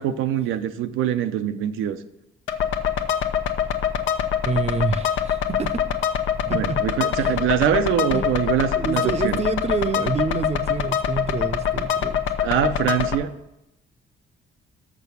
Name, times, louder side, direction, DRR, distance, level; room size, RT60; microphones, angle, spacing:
voice 1, 0.0-2.0 6.5-9.4 12.4-13.3, right 10 dB, 90° right, 9 dB, 0.7 m, -24 dB
sound 1, 2.5-13.1, left 8 dB, 75° left, 0.8 m, -24 dB
voice 2, 4.4-5.8 6.4-6.8 7.2-7.4 8.1-8.3 8.8-12.2, right 5 dB, 35° right, 11 dB, 0.6 m, -27 dB
6.4 x 6.2 x 7.0 m, 0.87 s
cardioid pair, 90°, 20 cm